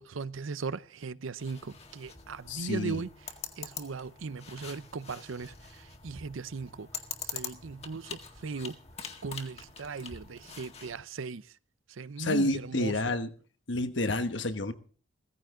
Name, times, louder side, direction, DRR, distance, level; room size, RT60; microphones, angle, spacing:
voice 1, 0.0-6.9 7.2-8.8 9.2-11.6 11.9-13.1, right 4 dB, 80° right, 0.6 m, -38 dB
sound 1, 1.4-11.0, left 6 dB, 30° left, 1.9 m, -44 dB
voice 2, 2.5-3.0 12.2-13.3 13.7-14.7, left 2 dB, 65° left, 1.3 m, -29 dB
17.0 x 15.0 x 3.8 m
head